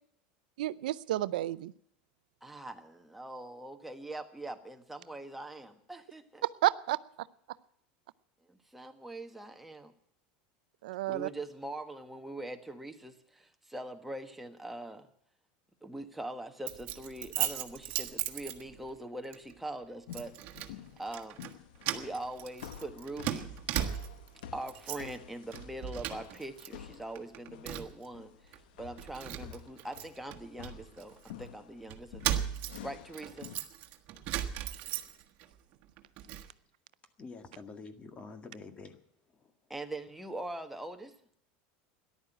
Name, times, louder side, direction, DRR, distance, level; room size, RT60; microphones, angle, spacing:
voice 1, 0.6-1.7 6.4-7.0 10.8-11.3, right 15 dB, 90° right, 17 dB, 0.5 m, -30 dB
voice 2, 2.4-6.4 8.5-9.9 11.1-15.0 15.8-20.3 20.6-20.7 21.0-21.4 21.8-23.5 24.5-32.5 32.8-33.5 39.7-41.1, right 1 dB, 5° right, 5 dB, 1.5 m, -42 dB
Keys jangling, 16.7-19.0 19.3-19.5 20.1-20.7 21.1-21.5 21.8-24.3 24.6-25.2 25.5-26.7 26.9-28.1 28.5-28.6 29.0-31.3 31.9-35.5 35.8-36.5, right 12 dB, 50° right, 1.5 m, -37 dB
sound 1, 20.1-33.6, left 10 dB, 80° left, 1.0 m, -50 dB
voice 3, 37.2-39.0 39.3-39.5, left 4 dB, 25° left, 8 dB, 1.9 m, -47 dB
14.0 x 11.0 x 9.0 m, 0.69 s
supercardioid pair, 130°, 4 cm